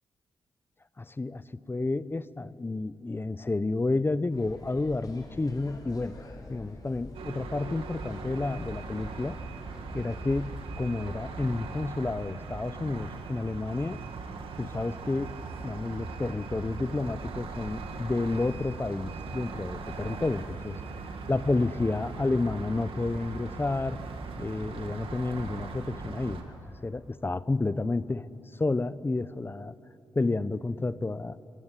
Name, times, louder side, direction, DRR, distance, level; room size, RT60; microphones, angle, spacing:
voice 1, 1.0-6.2 6.5-9.4 9.9-14.0 14.6-15.4 15.6-20.8 21.3-24.1 24.4-26.4 26.8-28.3 28.6-29.7 30.1-31.4, left 3 dB, 25° left, 16 dB, 0.8 m, -30 dB
sound 1, 4.3-11.6, left 1 dB, 45° left, 4.5 m, -46 dB
sound 2, 7.1-26.4, right 4 dB, 80° right, 2.5 m, -40 dB
26.0 x 20.0 x 10.0 m, 2.9 s
cardioid pair, 70°, 9 cm